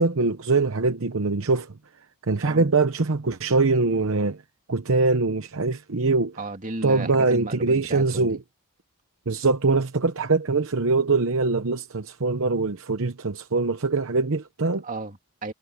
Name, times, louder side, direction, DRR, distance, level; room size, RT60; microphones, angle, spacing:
voice 1, 0.0-1.7 2.3-4.4 4.7-6.4 6.8-8.4 9.3-14.8, right 3 dB, 65° right, 0.9 m, -23 dB
voice 2, 6.4-8.4 14.8-15.5, right 2 dB, 35° right, 2.3 m, -34 dB
head